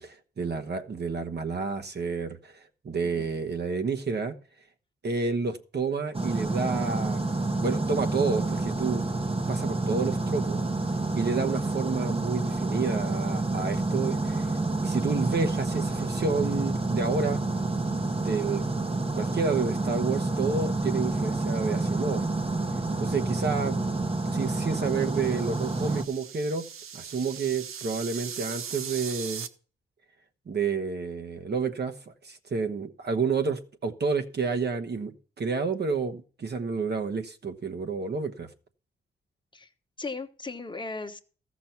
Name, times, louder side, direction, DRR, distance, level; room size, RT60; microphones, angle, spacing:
voice 1, 0.0-4.4 5.0-7.2 7.6-9.1 9.5-10.6 11.1-14.5 14.8-17.4 18.1-18.8 19.1-22.2 23.0-23.8 24.3-26.7 26.9-29.5 30.5-38.5, right 4 dB, 55° right, 1.2 m, -30 dB
sound 1, 6.1-26.0, right 2 dB, 25° right, 1.0 m, -28 dB
sound 2, 24.3-29.5, right 7 dB, 85° right, 0.8 m, -40 dB
voice 2, 40.0-41.2, left 3 dB, 20° left, 1.2 m, -37 dB
14.0 x 6.2 x 5.8 m
cardioid pair, 65°, 21 cm